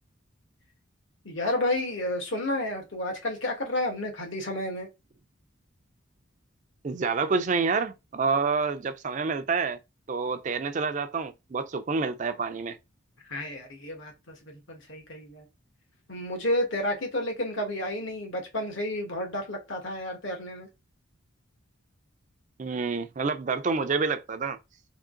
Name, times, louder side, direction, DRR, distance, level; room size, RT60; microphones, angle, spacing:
voice 1, 1.2-4.9 13.3-15.5 16.1-20.7, left 1 dB, 65° left, 1.4 m, -31 dB
voice 2, 6.8-9.8 10.1-12.8 22.6-24.6, right 4 dB, 35° right, 0.4 m, -28 dB
3.7 x 3.2 x 3.7 m
head